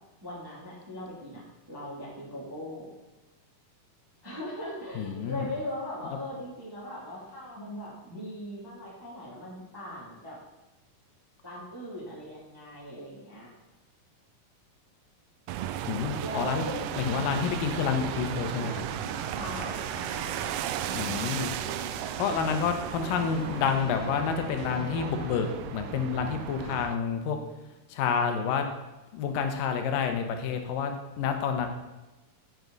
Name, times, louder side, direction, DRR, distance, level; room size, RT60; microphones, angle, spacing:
voice 1, 0.2-2.9 4.2-10.4 11.4-13.5 16.2-16.9 19.2-19.9, left 1 dB, 10° right, -6 dB, 2.0 m, -39 dB
voice 2, 5.0-5.5 15.8-16.6 16.9-18.8 20.9-21.5 22.2-27.4 27.9-28.7 29.1-31.7, left 6 dB, 90° left, 6 dB, 2.7 m, -29 dB
sound 1, 15.5-27.0, right 11 dB, 85° right, 1.6 m, -35 dB
sound 2, 17.0-25.5, left 2 dB, 60° left, 3.2 m, -43 dB
9.2 x 8.7 x 4.0 m, 1.1 s
omnidirectional pair, 3.8 m